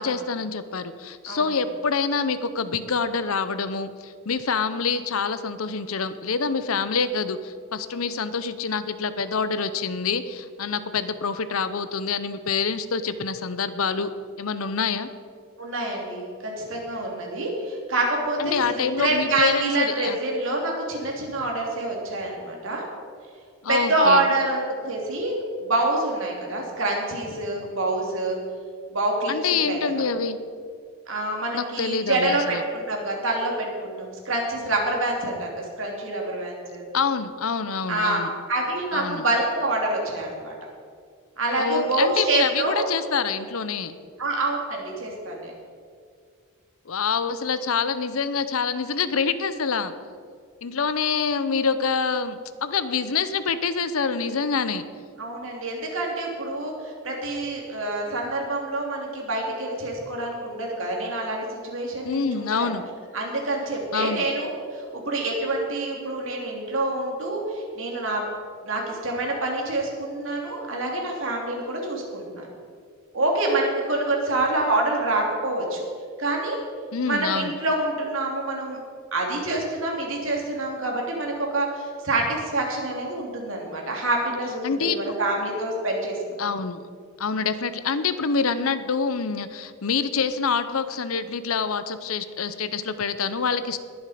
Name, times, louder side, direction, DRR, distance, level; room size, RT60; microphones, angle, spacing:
voice 1, 0.0-14.1 14.4-15.1 18.4-20.2 23.6-24.2 29.3-30.4 31.5-32.6 36.9-38.3 38.9-39.3 41.6-43.9 46.9-49.9 50.6-54.8 62.0-62.8 63.9-64.3 76.9-77.5 84.6-85.0 86.4-86.8 87.2-93.8, left 5 dB, 75° left, 12 dB, 0.7 m, -26 dB
voice 2, 15.6-22.9 23.7-28.4 28.9-29.3 29.7-30.0 31.1-36.9 37.9-38.2 38.5-40.7 41.4-42.9 44.2-45.5 55.2-62.7 63.1-68.2 68.6-72.5 73.1-75.8 76.2-76.6 77.0-78.8 79.1-86.2, right 2 dB, 60° right, -1 dB, 2.9 m, -26 dB
21.0 x 7.2 x 5.1 m, 2.2 s
head